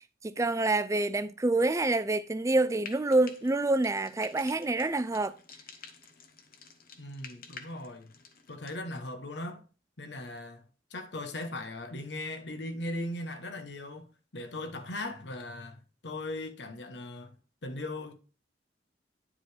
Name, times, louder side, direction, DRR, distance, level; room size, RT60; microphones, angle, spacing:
voice 1, 0.2-5.3, right 2 dB, 15° right, 0.4 m, -27 dB
Frying (food), 2.7-8.8, left 6 dB, 50° left, 1.0 m, -50 dB
voice 2, 7.0-8.1 8.5-9.6 10.0-17.4 17.6-18.2, left 1 dB, 75° left, 1.1 m, -39 dB
9.9 x 4.9 x 3.4 m
head